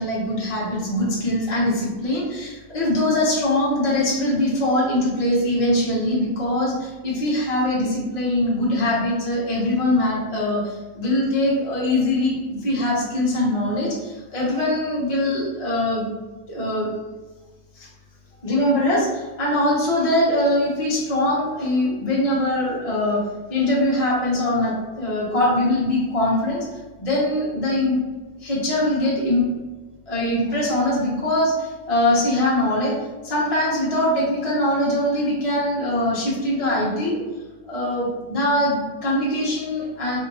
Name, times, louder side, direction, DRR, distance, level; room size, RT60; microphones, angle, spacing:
voice 1, 0.0-16.1 16.5-16.9 17.8-17.9 18.4-23.2 23.5-26.6 27.0-28.0 28.4-29.5 30.1-33.0 33.2-37.2 37.7-40.2, left 1 dB, 30° left, -6 dB, 0.8 m, -22 dB
4.2 x 2.7 x 2.7 m, 1.3 s
omnidirectional pair, 1.6 m